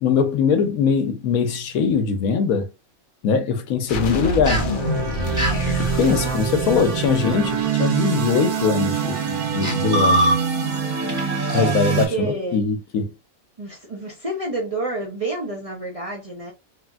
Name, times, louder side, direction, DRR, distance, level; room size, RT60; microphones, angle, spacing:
voice 1, 0.0-2.7 3.2-4.6 5.8-10.3 11.5-13.1, left 6 dB, 80° left, 1.1 m, -21 dB
sound 1, 3.9-7.6, left 1 dB, 55° left, 0.6 m, -27 dB
voice 2, 4.1-4.4 6.0-6.4 11.5-12.6 13.6-16.5, right 2 dB, 40° right, 0.5 m, -29 dB
sound 2, 4.5-4.7 5.4-5.6 7.3-7.5 8.3-8.6 9.3-9.4 9.6-10.8 11.1-11.2 11.5-11.6, right 1 dB, 5° right, 1.2 m, -22 dB
sound 3, 4.5-12.1, right 7 dB, 85° right, 1.5 m, -25 dB
3.2 x 2.5 x 2.3 m
omnidirectional pair, 1.5 m